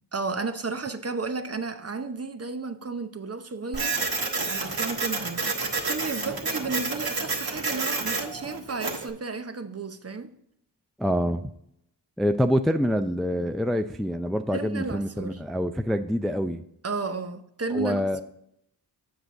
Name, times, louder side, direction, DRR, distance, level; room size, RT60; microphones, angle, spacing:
voice 1, 0.1-10.3 14.5-15.4 16.8-18.0, right 4 dB, 35° right, 0.8 m, -33 dB
Printer, 3.7-9.1, right 3 dB, 60° right, 1.5 m, -29 dB
voice 2, 11.0-11.5 12.2-16.6 17.7-18.2, equal, ahead, 0.4 m, -26 dB
7.3 x 6.4 x 3.7 m
cardioid pair, 50°, 42 cm